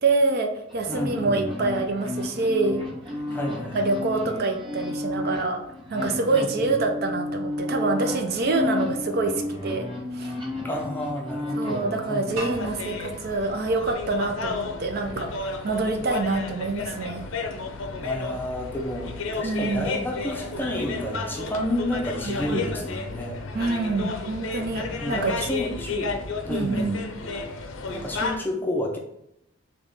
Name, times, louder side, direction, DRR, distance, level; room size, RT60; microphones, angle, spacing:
voice 1, 0.0-2.8 3.7-5.6 5.9-10.4 11.6-17.2 19.4-19.9 22.2-22.6 23.5-25.3 26.5-27.0, right 3 dB, 45° right, 4 dB, 0.5 m, -26 dB
sound 1, 0.7-12.4, left 2 dB, 25° right, 1.1 m, -32 dB
voice 2, 0.9-1.5 3.3-3.8 6.3-6.7 10.6-12.5 17.9-23.4 25.0-26.1 26.4-27.1 27.9-29.0, equal, 10° left, -1 dB, 0.5 m, -31 dB
sound 2, 12.4-15.3, right 2 dB, 85° right, 1.1 m, -41 dB
sound 3, 12.5-28.4, left 4 dB, 65° left, 0.6 m, -33 dB
4.0 x 3.0 x 3.5 m, 0.78 s
head